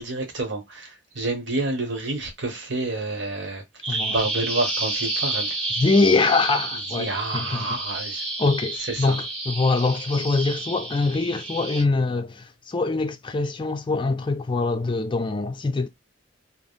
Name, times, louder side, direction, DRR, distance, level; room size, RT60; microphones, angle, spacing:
voice 1, 0.0-5.6 6.7-8.2 8.8-9.2, right 2 dB, 65° right, 1.1 m, -29 dB
Bird vocalization bird call bird song, 3.8-11.8, right 2 dB, 30° right, 1.3 m, -30 dB
voice 2, 5.8-7.7 8.4-15.9, left 3 dB, 25° left, 0.4 m, -23 dB
3.4 x 2.0 x 2.3 m
head